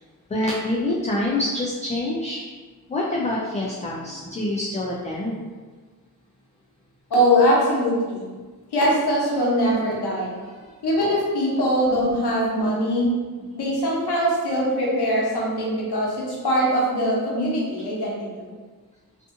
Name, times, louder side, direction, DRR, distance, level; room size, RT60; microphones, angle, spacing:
voice 1, 0.3-2.4 2.9-5.4 10.6-10.7, left 1 dB, 20° left, -4 dB, 0.3 m, -26 dB
voice 2, 7.1-8.3 8.7-10.4 10.8-13.1 13.5-18.5, equal, 85° left, -4 dB, 0.8 m, -22 dB
2.6 x 2.5 x 2.5 m, 1.4 s
cardioid pair, 60°, 38 cm